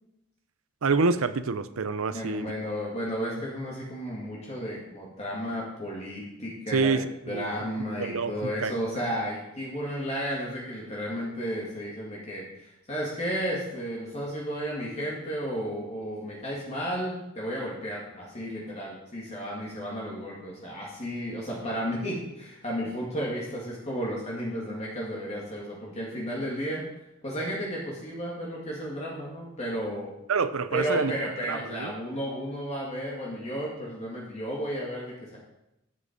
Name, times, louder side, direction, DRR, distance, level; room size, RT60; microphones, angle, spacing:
voice 1, 0.8-2.5 6.7-7.5 8.0-9.0 30.3-31.1 31.5-31.9, right 4 dB, 85° right, 13 dB, 0.6 m, -27 dB
voice 2, 2.1-7.0 7.3-26.8 27.2-30.1 30.7-35.4, equal, 30° left, -4 dB, 2.2 m, -33 dB
11.0 x 7.6 x 5.2 m, 0.90 s
head